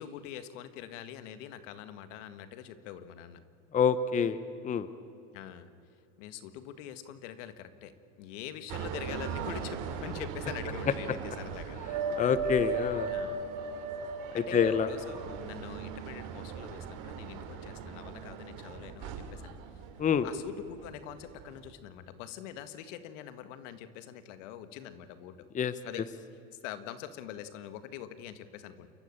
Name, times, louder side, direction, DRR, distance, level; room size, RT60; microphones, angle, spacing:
voice 1, 0.0-3.4 5.3-5.7 6.2-11.8 13.1-13.5 14.3-19.6 20.2-25.5 25.8-26.1 26.6-28.9, left 10 dB, 75° left, 11 dB, 1.8 m, -44 dB
voice 2, 3.7-4.4 4.6-4.9 12.2-13.1 14.3-14.9 20.0-20.3 25.5-25.7, left 7 dB, 20° left, 14 dB, 0.8 m, -26 dB
sound 1, 8.7-20.9 21.3-21.7, right 4 dB, 55° right, 2.8 m, -37 dB
29.0 x 14.0 x 8.9 m, 2.7 s
supercardioid pair, 130°, 37 cm